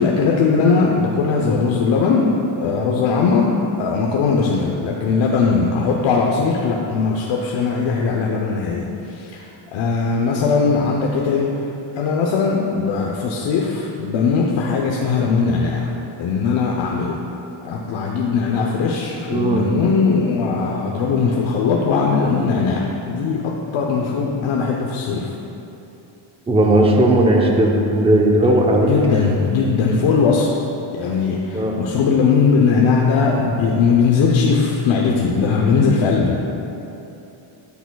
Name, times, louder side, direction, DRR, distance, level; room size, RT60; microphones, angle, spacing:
voice 1, 0.0-11.6 11.9-15.9 16.2-17.2 17.6-25.3 28.9-30.5 30.9-36.4, left 5 dB, 65° left, -1 dB, 0.9 m, -19 dB
voice 2, 19.3-19.7 26.5-28.9 29.9-30.0 31.5-31.8, right 1 dB, 10° right, 0 dB, 0.7 m, -16 dB
12.5 x 7.0 x 2.3 m, 2.9 s
cardioid pair, 110°, 49 cm